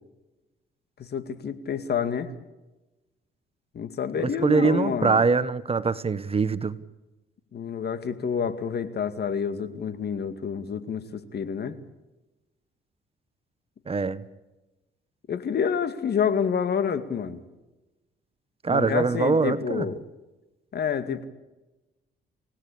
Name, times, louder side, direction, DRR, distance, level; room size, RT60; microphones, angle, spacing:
voice 1, 1.0-2.3 3.7-5.2 7.5-11.8 15.3-17.4 18.7-20.0 20.7-21.3, left 7 dB, 55° left, 12 dB, 2.2 m, -28 dB
voice 2, 4.2-6.8 13.9-14.2 18.6-19.8, right 4 dB, 30° right, 15 dB, 1.2 m, -23 dB
29.5 x 17.5 x 8.6 m, 1.1 s
cardioid pair, 90°, 20 cm